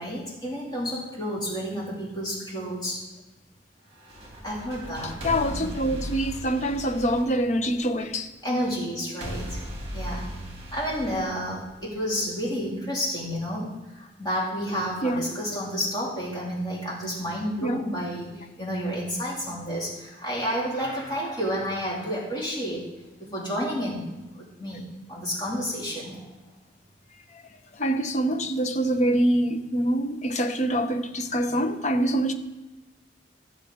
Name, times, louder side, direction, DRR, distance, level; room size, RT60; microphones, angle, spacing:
voice 1, 0.0-3.0 4.4-5.1 5.5-5.7 8.4-9.6 9.9-10.3 10.7-22.8 23.2-26.2, equal, 25° left, 3.9 m, -30 dB
sound 1, 3.9-8.1 9.2-12.1, equal, 35° right, 2.5 m, -37 dB
voice 2, 5.0-8.3 15.0-15.2 17.6-17.8 27.3-27.4 27.7-32.3, right 1 dB, 40° left, 0.9 m, -25 dB
13.5 x 6.7 x 5.1 m
head